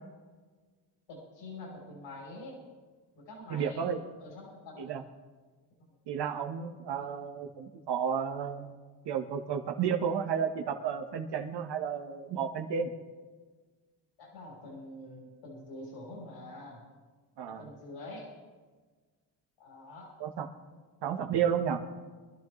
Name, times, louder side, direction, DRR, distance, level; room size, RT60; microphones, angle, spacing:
voice 1, 1.1-2.6 3.2-3.9 4.2-4.9 14.2-16.8 17.5-18.3 19.6-20.1, left 2 dB, 75° left, -2 dB, 4.0 m, -46 dB
voice 2, 3.5-4.0 4.8-5.0 6.1-8.7 9.0-12.9 17.4-17.6 20.2-20.5 21.0-21.8, right 7 dB, 70° right, 4 dB, 1.5 m, -32 dB
23.5 x 12.0 x 3.3 m, 1.4 s
cardioid pair, 85°, 43 cm